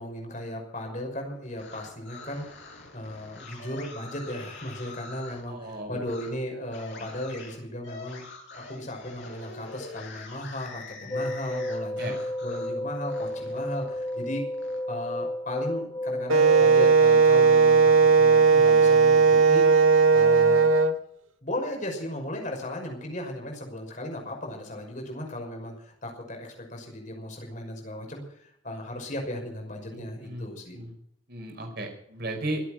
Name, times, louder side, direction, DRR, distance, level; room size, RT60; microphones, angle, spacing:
voice 1, 0.0-2.5 2.9-8.2 8.6-14.5 14.9-19.6 20.1-20.7 21.4-30.8, left 1 dB, 40° left, 2 dB, 5.8 m, -36 dB
sound 1, 1.4-5.4 6.0-6.3 6.7-12.7 13.1-14.8, left 3 dB, 55° left, 8.0 m, -45 dB
voice 2, 5.5-6.0 11.0-11.2 12.0-12.1 29.9-30.5 30.7-30.9 31.3-32.6, right 1 dB, 50° right, 3 dB, 5.2 m, -35 dB
sound 2, 11.1-16.9, left 1 dB, 15° left, 0.5 m, -32 dB
Wind instrument woodwind instrument, 16.3-20.9, right 5 dB, 90° right, 1.8 m, -17 dB
25.5 x 8.7 x 6.1 m, 0.69 s
head